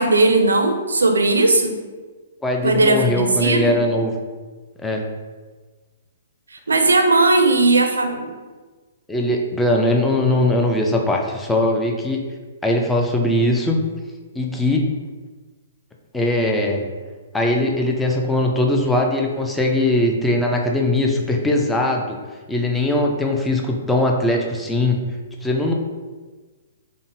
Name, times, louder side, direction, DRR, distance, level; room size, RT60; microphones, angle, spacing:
voice 1, 0.0-1.7 2.6-3.8 6.7-8.3, right 2 dB, 80° right, 5 dB, 0.4 m, -17 dB
voice 2, 2.4-4.1 4.8-5.0 9.1-12.2 12.6-13.8 14.3-14.9 16.1-16.9 17.3-22.2 22.5-25.0 25.4-25.7, left 1 dB, 10° left, 1 dB, 0.4 m, -20 dB
3.7 x 2.0 x 2.6 m, 1.3 s
figure-of-eight pair, 125°, 0 cm